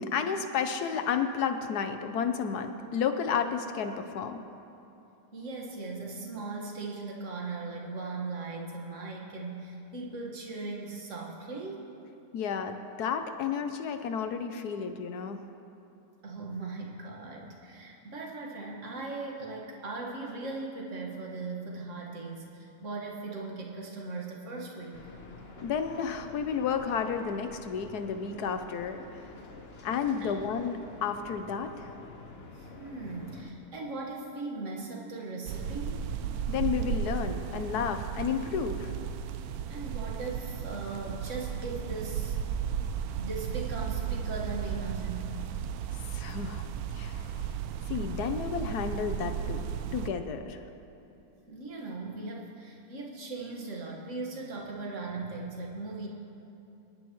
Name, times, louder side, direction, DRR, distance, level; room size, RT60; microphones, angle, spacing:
voice 1, 0.0-4.4 12.3-15.4 25.6-29.0 29.8-31.9 36.5-38.9 46.1-46.7 46.9-47.3 47.9-49.7 49.9-50.6, left 6 dB, 70° left, 7 dB, 1.2 m, -31 dB
voice 2, 5.3-11.8 16.2-25.0 30.2-30.4 32.5-36.0 39.7-42.4 43.1-45.3 51.5-56.1, right 3 dB, 45° right, -2 dB, 1.9 m, -38 dB
sound 1, 24.9-33.5, left 3 dB, 40° left, 1.1 m, -48 dB
sound 2, 35.5-50.1, right 8 dB, 70° right, 0.9 m, -34 dB
25.0 x 10.5 x 3.1 m, 2.8 s
omnidirectional pair, 1.9 m